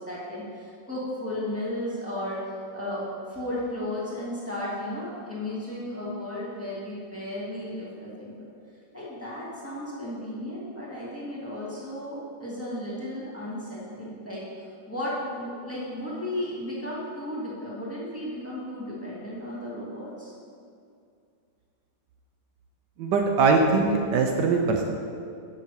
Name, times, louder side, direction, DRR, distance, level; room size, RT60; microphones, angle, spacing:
voice 1, 0.0-8.4 8.9-14.4 14.9-20.3, left 1 dB, 5° left, -7 dB, 2.2 m, -34 dB
voice 2, 23.0-24.8, right 4 dB, 75° right, 2 dB, 1.3 m, -21 dB
7.6 x 5.8 x 6.8 m, 2.4 s
omnidirectional pair, 2.0 m